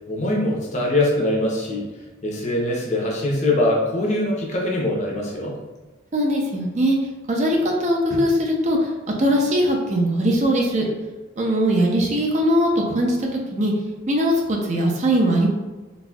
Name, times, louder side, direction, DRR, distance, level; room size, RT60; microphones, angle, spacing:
voice 1, 0.1-1.8 2.2-5.6, left 1 dB, 40° left, -2 dB, 0.7 m, -22 dB
voice 2, 6.1-7.0 7.3-8.9 9.2-10.9 11.4-13.7 14.1-15.5, equal, 40° right, 0 dB, 0.5 m, -20 dB
4.0 x 2.6 x 2.3 m, 1.2 s
head